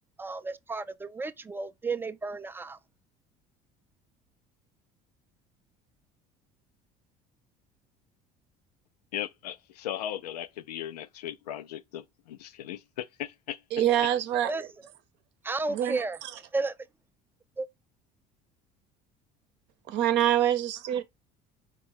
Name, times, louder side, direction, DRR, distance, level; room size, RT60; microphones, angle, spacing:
voice 1, 0.2-2.8 14.4-14.7 15.4-16.2 16.5-16.8 17.6-17.7, right 3 dB, 10° right, 0.4 m, -32 dB
voice 2, 9.1-13.6, left 11 dB, 90° left, 0.4 m, -37 dB
voice 3, 13.7-14.5 15.7-16.0 19.9-21.0, right 11 dB, 60° right, 0.8 m, -25 dB
4.6 x 2.3 x 4.3 m
hypercardioid pair, 70°, 20 cm